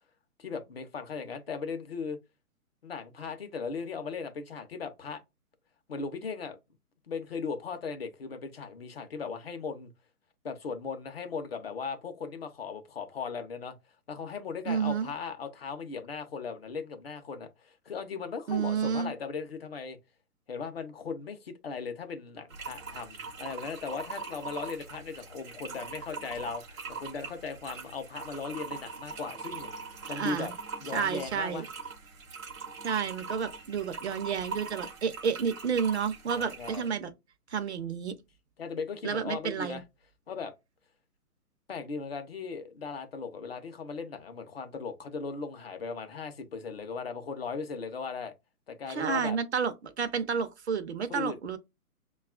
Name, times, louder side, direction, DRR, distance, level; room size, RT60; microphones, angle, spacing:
voice 1, 0.4-2.2 2.8-5.2 5.9-6.6 7.1-9.9 10.4-13.7 14.1-20.0 20.5-29.7 30.1-30.5 30.8-31.7 36.3-36.9 38.6-39.8 40.3-40.5 41.7-48.3 48.7-49.4 51.1-51.4, left 5 dB, 40° left, 0.6 m, -38 dB
voice 2, 14.7-15.1 18.5-19.1 30.1-30.5 30.9-31.6 32.8-37.1 37.5-38.1 39.0-39.8 48.9-51.6, right 6 dB, 50° right, 0.6 m, -30 dB
sound 1, 22.5-36.9, right 5 dB, 65° right, 0.9 m, -42 dB
5.5 x 2.3 x 2.2 m
figure-of-eight pair, 135°, 45 cm